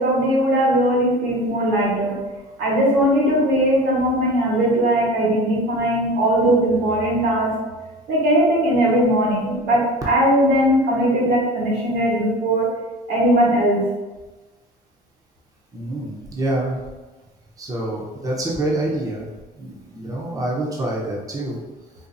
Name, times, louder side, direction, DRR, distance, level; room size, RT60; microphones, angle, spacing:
voice 1, 0.0-2.1 2.6-7.5 8.1-12.7 13.1-13.8, right 1 dB, 85° right, -4 dB, 1.2 m, -19 dB
voice 2, 15.7-16.8 17.6-19.3 19.5-21.6, right 1 dB, 20° right, -4 dB, 0.7 m, -26 dB
4.0 x 2.6 x 2.6 m, 1.2 s
cardioid pair, 110°, 17 cm